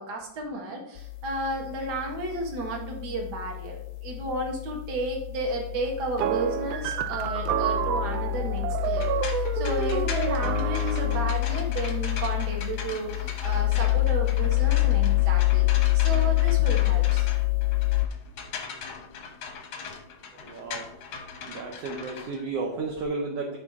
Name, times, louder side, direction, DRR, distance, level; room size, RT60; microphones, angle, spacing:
voice 1, 0.0-15.7 15.9-17.3, right 2 dB, 40° right, 0 dB, 1.9 m, -33 dB
sound 1, 1.0-18.1, left 21 dB, 80° left, 1.8 m, -27 dB
sound 2, 6.2-11.4, right 9 dB, 85° right, 1.4 m, -29 dB
sound 3, 8.8-23.0, left 5 dB, 60° left, 1.3 m, -40 dB
voice 2, 20.3-20.9 21.5-23.6, right 3 dB, 65° right, 1 dB, 1.7 m, -33 dB
12.0 x 4.9 x 3.6 m, 0.73 s
omnidirectional pair, 3.3 m